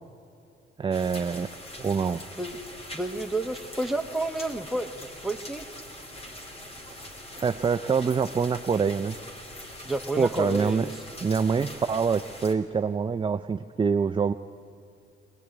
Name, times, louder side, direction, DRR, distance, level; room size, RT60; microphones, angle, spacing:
voice 1, 0.8-1.5 1.8-2.2 6.9-7.1 7.4-9.2 10.2-10.9 11.2-14.3, right 5 dB, 25° right, 8 dB, 0.5 m, -25 dB
sound 1, 0.9-12.6, left 1 dB, 30° left, 2.9 m, -43 dB
voice 2, 2.9-5.7 9.8-11.0, right 1 dB, ahead, 4 dB, 1.4 m, -30 dB
22.0 x 20.0 x 9.3 m, 2.7 s
cardioid pair, 90°, 20 cm